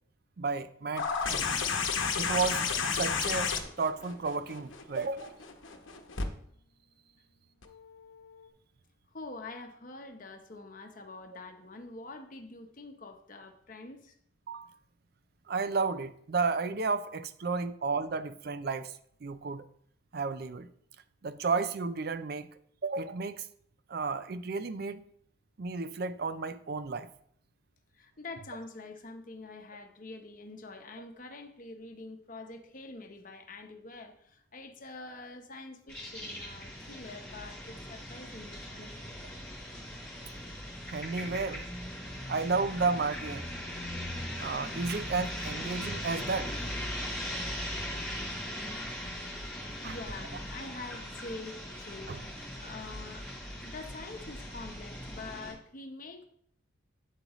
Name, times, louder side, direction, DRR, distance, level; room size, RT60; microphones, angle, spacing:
voice 1, 0.4-1.5 2.2-2.6 2.9-5.4 14.5-14.7 15.5-18.9 19.2-19.7 20.1-20.7 21.2-22.5 22.8-23.5 23.9-25.0 25.6-27.1 40.9-41.6 42.3-43.5 44.4-46.6 47.6-47.7 49.8-50.0 52.1-52.2, right 4 dB, 50° right, 12 dB, 0.4 m, -32 dB
sound 1, 1.0-6.3 7.6-7.7, left 5 dB, 75° left, 0.9 m, -31 dB
voice 2, 9.1-14.1 27.9-39.2 49.8-53.3 53.6-56.2, left 3 dB, 40° left, 5 dB, 0.9 m, -45 dB
sound 2, 35.9-55.5, equal, 5° left, 3.2 m, -39 dB
8.3 x 7.7 x 3.0 m, 0.65 s
head